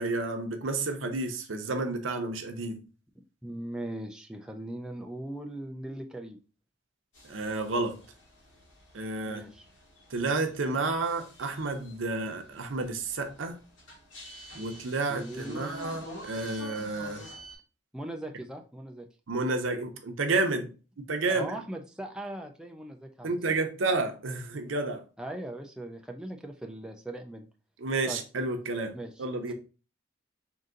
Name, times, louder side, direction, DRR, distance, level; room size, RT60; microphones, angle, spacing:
voice 1, 0.0-2.8 7.2-8.0 8.9-9.4 10.1-13.6 14.5-17.2 19.3-20.7 21.1-21.5 23.2-25.0 27.8-28.9 29.2-29.5, right 3 dB, 85° right, 0.7 m, -30 dB
voice 2, 3.4-6.4 9.2-9.7 15.1-15.7 17.9-19.1 21.3-23.4 25.2-27.5 28.0-28.2 28.9-29.5, right 1 dB, 5° right, 0.4 m, -39 dB
sound 1, 7.1-17.6, equal, 90° left, 1.9 m, -48 dB
3.8 x 2.6 x 3.7 m
head